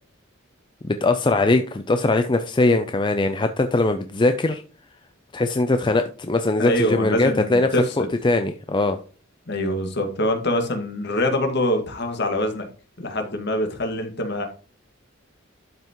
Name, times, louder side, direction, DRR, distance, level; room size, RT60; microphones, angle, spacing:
voice 1, 0.8-4.6 5.3-7.7 8.0-9.0, left 2 dB, 25° left, 8 dB, 0.5 m, -21 dB
voice 2, 6.6-8.1 9.5-12.7 13.0-14.5, left 1 dB, 55° left, 4 dB, 1.9 m, -24 dB
12.0 x 5.6 x 3.0 m, 0.38 s
head